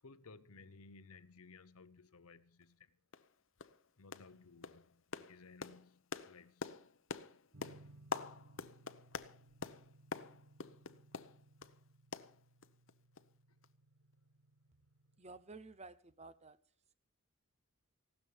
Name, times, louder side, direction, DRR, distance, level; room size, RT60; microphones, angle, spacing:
voice 1, 0.0-3.0 4.0-6.7 10.5-10.6 13.5-13.6, left 4 dB, 85° left, 0.9 m, -59 dB
sound 1, 2.6-2.7 3.1-3.3 3.6-3.8 4.1-4.4 4.6-11.8 12.1-12.9 13.2-13.3 13.6-13.7, left 4 dB, 60° left, 0.8 m, -46 dB
sound 2, 7.5-15.2, right 2 dB, 75° right, 1.9 m, -63 dB
voice 2, 15.2-16.6, right 3 dB, 30° right, 0.8 m, -53 dB
16.5 x 12.5 x 5.1 m
head